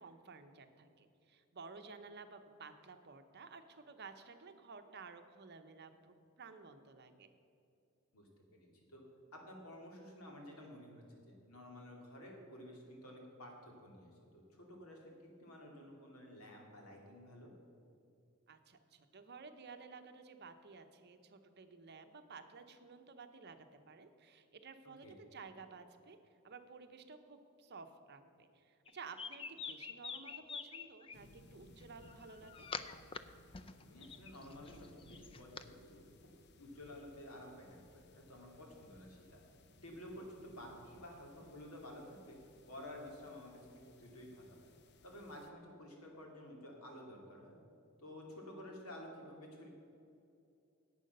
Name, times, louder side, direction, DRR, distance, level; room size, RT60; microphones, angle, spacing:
voice 1, 0.0-7.3 18.5-26.2 26.4-32.7, right 4 dB, 50° right, 8 dB, 0.8 m, -54 dB
voice 2, 8.1-9.0 9.3-17.5 25.0-25.1 33.8-36.3 36.6-39.4 39.8-42.4 42.7-44.6 45.0-47.5 48.0-49.7, left 1 dB, 85° left, 0 dB, 2.6 m, -52 dB
sound 1, 28.9-31.2 32.0-33.2 33.5-35.6, left 5 dB, 25° left, 0.4 m, -46 dB
sound 2, 31.1-45.5, left 2 dB, 50° left, 0.7 m, -63 dB
10.5 x 8.5 x 6.6 m, 2.6 s
head